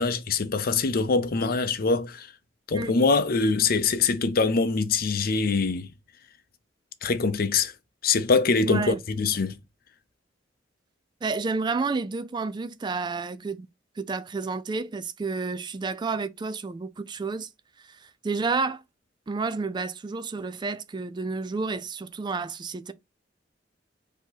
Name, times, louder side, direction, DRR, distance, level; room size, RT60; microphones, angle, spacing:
voice 1, 0.0-2.3 2.7-5.9 7.0-7.7 8.0-9.6, left 4 dB, 50° left, 0.6 m, -23 dB
voice 2, 8.6-9.0 11.2-13.7 14.0-17.5 17.8-18.8 19.3-22.9, right 4 dB, 25° right, 0.3 m, -30 dB
4.6 x 2.9 x 3.9 m
head